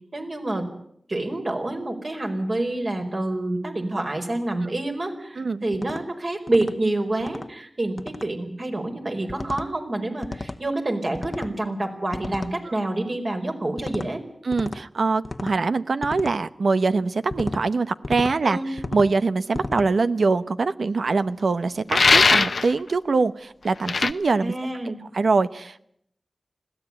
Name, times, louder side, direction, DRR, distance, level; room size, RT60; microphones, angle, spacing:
voice 1, 0.1-0.7 1.1-14.2 18.4-18.7 24.4-25.0, right 2 dB, 50° right, 3 dB, 4.8 m, -27 dB
sound 1, 5.7-6.0 6.5-6.7 7.2-7.5 8.0-8.3 9.3-9.7 10.2-10.6 11.1-11.6 12.1-12.5 13.8-14.1 14.5-14.8 15.2-15.6 16.0-16.4 17.3-17.6 18.0-18.4 18.8-19.1 19.5-19.9, left 2 dB, 45° left, 1.0 m, -33 dB
voice 2, 14.4-18.6 18.9-24.5 24.8-25.9, right 4 dB, 85° right, 13 dB, 0.9 m, -23 dB
sound 2, 21.9-22.7 23.9-24.1, left 4 dB, 75° left, 0.8 m, -18 dB
21.0 x 16.0 x 10.0 m, 0.73 s
wide cardioid pair, 75°, 0 cm